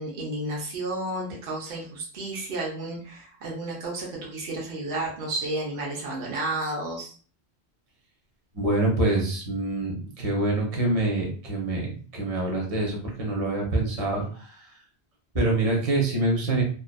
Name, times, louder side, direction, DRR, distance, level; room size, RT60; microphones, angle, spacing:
voice 1, 0.0-7.1, right 2 dB, 65° right, -3 dB, 0.9 m, -32 dB
voice 2, 8.5-14.7 15.3-16.6, right 2 dB, 40° right, -1 dB, 0.7 m, -26 dB
2.5 x 2.3 x 2.2 m, 0.42 s
omnidirectional pair, 1.1 m